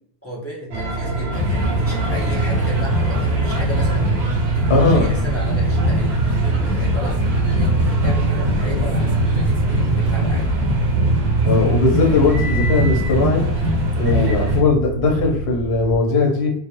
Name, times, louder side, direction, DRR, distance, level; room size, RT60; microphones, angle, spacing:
voice 1, 0.2-4.2 4.5-9.2 9.7-10.5 12.0-12.3 14.1-14.3, equal, 15° left, -4 dB, 0.5 m, -33 dB
sound 1, 0.7-16.0, right 5 dB, 80° right, 0.9 m, -24 dB
sound 2, 1.3-14.6, left 1 dB, 50° right, 0.7 m, -22 dB
voice 2, 4.7-5.1 11.4-13.5 14.0-16.5, left 3 dB, 75° left, 0 dB, 0.9 m, -18 dB
2.3 x 2.1 x 2.8 m, 0.66 s
omnidirectional pair, 1.1 m